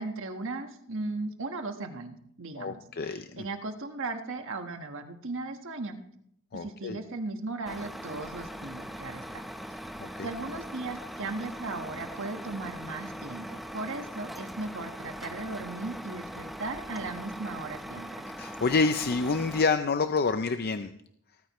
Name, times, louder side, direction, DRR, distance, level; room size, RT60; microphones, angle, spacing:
voice 1, 0.0-6.0 6.5-9.5 10.2-18.3, right 3 dB, 60° right, 6 dB, 1.5 m, -37 dB
voice 2, 2.6-3.4 6.5-7.0 10.0-10.3 18.3-20.9, left 4 dB, 45° left, 9 dB, 0.5 m, -28 dB
Truck, 7.6-19.6, equal, ahead, 0.8 m, -41 dB
17.5 x 14.0 x 3.1 m, 0.71 s
head